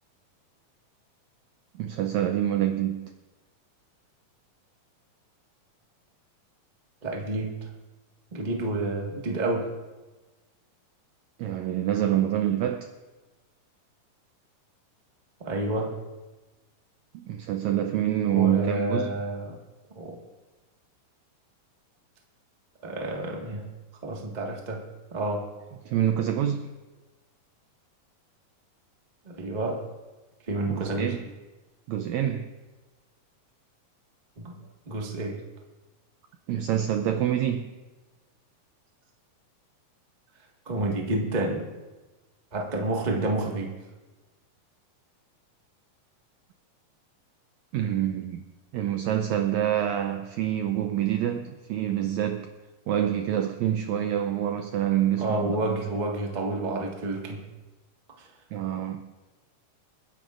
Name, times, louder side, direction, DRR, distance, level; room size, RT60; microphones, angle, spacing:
voice 1, 1.8-3.1 11.4-12.9 17.1-19.2 25.8-26.7 30.7-31.2 31.9-32.5 36.5-37.8 47.7-48.5 48.7-52.5 52.9-55.8 58.5-59.1, right 11 dB, 85° right, 1.6 m, -26 dB
voice 2, 7.0-7.7 8.3-9.7 15.4-16.0 18.3-19.6 19.9-20.2 22.8-23.7 24.0-25.5 29.2-29.9 30.5-31.1 34.4-34.5 34.8-35.4 40.6-41.7 42.5-43.8 55.2-57.5, right 2 dB, 60° right, 0.4 m, -29 dB
29.0 x 10.0 x 2.5 m
omnidirectional pair, 3.9 m